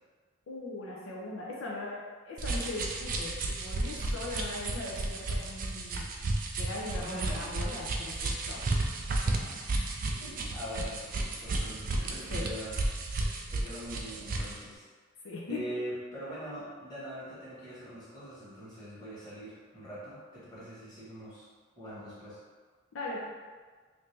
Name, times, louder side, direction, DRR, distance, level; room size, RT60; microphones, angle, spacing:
voice 1, 0.5-6.1 6.6-8.7 12.3-12.4 15.2-15.7 22.9-23.2, left 2 dB, 80° left, -3 dB, 0.5 m, -39 dB
sound 1, 2.4-14.6, right 2 dB, 45° right, 0.4 m, -33 dB
voice 2, 7.0-7.4 9.3-9.5 10.2-12.8 13.5-14.8 15.5-21.5 21.8-22.4, equal, 20° left, -11 dB, 1.3 m, -42 dB
3.2 x 2.6 x 3.3 m, 1.5 s
head